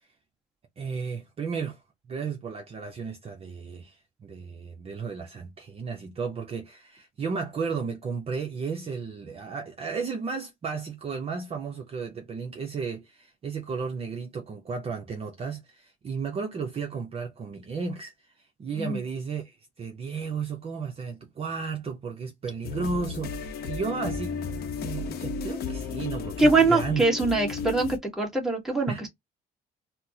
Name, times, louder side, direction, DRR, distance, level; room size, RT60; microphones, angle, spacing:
voice 1, 0.8-1.8 2.1-24.4 24.8-27.0 28.9-29.0, right 5 dB, 35° right, 0.6 m, -34 dB
sound 1, 22.6-28.0, left 5 dB, 65° left, 0.7 m, -34 dB
voice 2, 26.4-29.1, right 3 dB, ahead, 1.3 m, -23 dB
4.1 x 2.0 x 2.8 m
cardioid pair, 110°, 17 cm